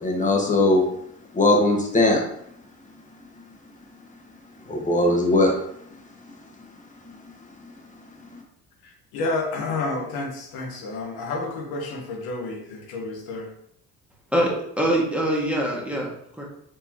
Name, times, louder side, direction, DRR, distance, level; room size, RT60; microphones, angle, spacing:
voice 1, 0.0-0.8 1.3-2.2 4.7-5.5, left 2 dB, 20° left, 0 dB, 1.3 m, -19 dB
voice 2, 8.8-13.5, left 3 dB, 85° left, 1 dB, 1.1 m, -30 dB
voice 3, 14.3-16.1 16.4-16.5, right 1 dB, 5° right, -2 dB, 1.5 m, -23 dB
4.9 x 3.4 x 2.8 m, 0.71 s
supercardioid pair, 70°, 37 cm